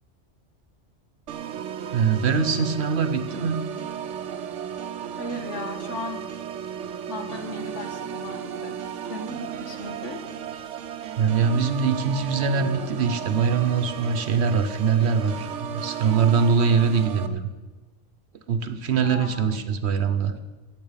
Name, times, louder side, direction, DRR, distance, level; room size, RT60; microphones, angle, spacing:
Organ, 1.3-17.3, right 9 dB, 85° right, 1.1 m, -35 dB
voice 1, 1.9-3.6 11.2-17.4 18.5-20.4, right 6 dB, 65° right, 9 dB, 1.1 m, -23 dB
voice 2, 5.2-6.2 7.1-8.8 9.1-10.2 19.0-19.6, left 2 dB, 80° left, 5 dB, 1.8 m, -36 dB
10.5 x 8.0 x 9.7 m, 1.3 s
omnidirectional pair, 1.2 m